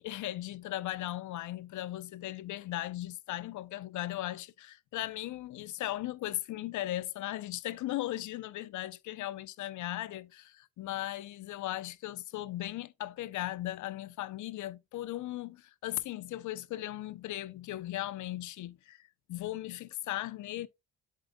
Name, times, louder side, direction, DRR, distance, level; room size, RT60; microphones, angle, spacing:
voice 1, 0.0-20.7, left 15 dB, 75° left, 0.7 m, -37 dB
7.9 x 7.7 x 2.3 m
cardioid pair, 90°, 30 cm